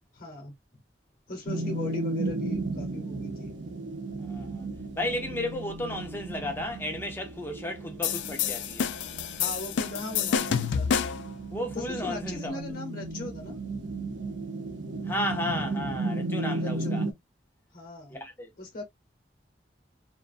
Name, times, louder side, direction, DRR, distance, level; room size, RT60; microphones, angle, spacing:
voice 1, 0.1-0.5 1.3-3.5 9.4-10.9 11.7-13.6 16.5-17.0 17.7-18.2 18.6-18.8, left 1 dB, 50° left, 0.9 m, -39 dB
sound 1, 1.5-17.1, right 2 dB, 75° right, 0.5 m, -34 dB
voice 2, 4.2-4.7 5.0-8.9 11.5-12.6 15.0-17.0 18.1-18.5, left 1 dB, 10° left, 0.5 m, -34 dB
sound 2, 8.0-11.3, left 7 dB, 75° left, 0.3 m, -28 dB
2.5 x 2.2 x 2.4 m
head